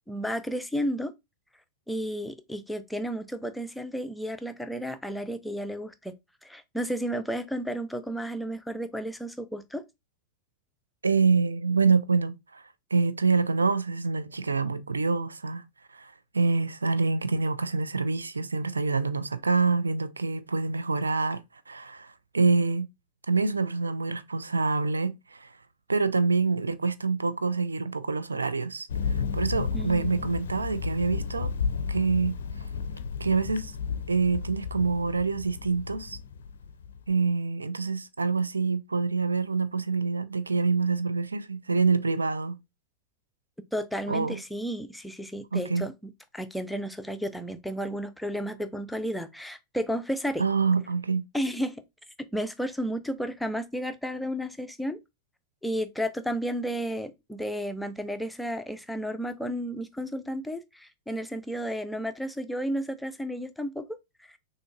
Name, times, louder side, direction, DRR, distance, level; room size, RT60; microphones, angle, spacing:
voice 1, 0.1-1.1 1.9-6.1 6.4-9.8 29.7-30.3 43.7-50.4 51.3-51.8 52.3-55.0 55.6-63.9 64.3-64.4, equal, 5° left, 0.5 m, -32 dB
voice 2, 11.0-12.6 12.9-15.6 15.9-21.4 21.7-22.9 23.3-25.5 25.9-31.5 31.9-32.4 33.2-33.7 34.1-36.2 37.1-42.6 44.1-44.4 45.5-45.9 50.4-51.2, right 4 dB, 75° right, 0.3 m, -26 dB
Thunder, 28.9-37.1, left 5 dB, 65° left, 0.4 m, -33 dB
6.1 x 2.7 x 2.4 m
figure-of-eight pair, 90°, 0 cm